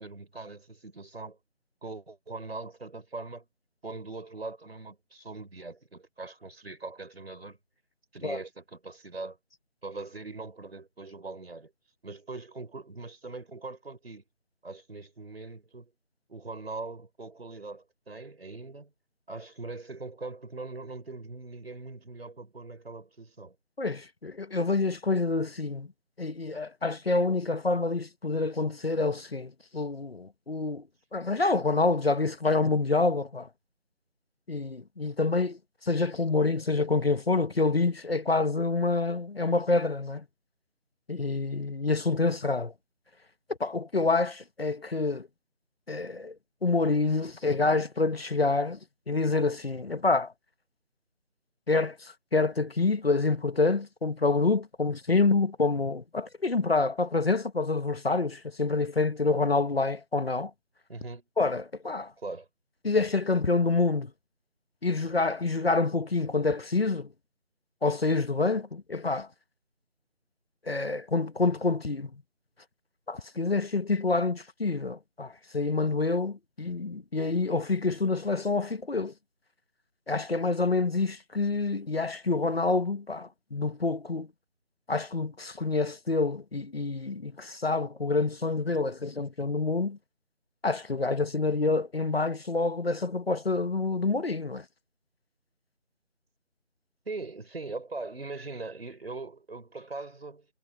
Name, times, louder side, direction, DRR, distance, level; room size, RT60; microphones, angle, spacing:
voice 1, 0.0-1.4 1.8-3.5 3.8-7.6 8.1-9.4 9.8-11.7 12.0-14.2 14.6-15.9 16.3-18.9 19.3-23.6 60.9-61.2 62.2-62.5 97.1-100.5, right 3 dB, 55° right, 4.4 m, -41 dB
voice 2, 23.8-25.9 26.2-30.8 31.1-33.5 34.5-40.2 41.1-42.7 43.6-45.3 45.9-46.3 46.6-48.8 49.1-50.3 51.7-60.5 61.4-62.1 62.8-64.1 64.8-67.1 67.8-69.3 70.7-72.1 73.1-79.1 80.1-84.3 84.9-90.0 90.6-94.6, left 3 dB, 55° left, 1.4 m, -27 dB
figure-of-eight pair, 175°, 36 cm